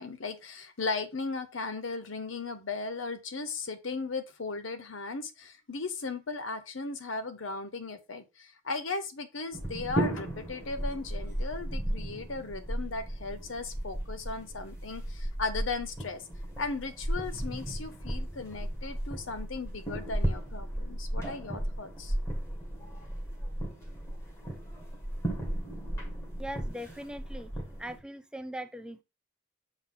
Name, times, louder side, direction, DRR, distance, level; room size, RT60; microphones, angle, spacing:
voice 1, 0.0-16.2 16.6-22.1, left 3 dB, 75° left, 0.9 m, -37 dB
sound 1, 9.5-28.0, right 1 dB, 15° left, 1.7 m, -35 dB
voice 2, 26.4-27.5 27.8-29.0, equal, 5° right, 0.4 m, -40 dB
7.3 x 4.0 x 3.7 m
head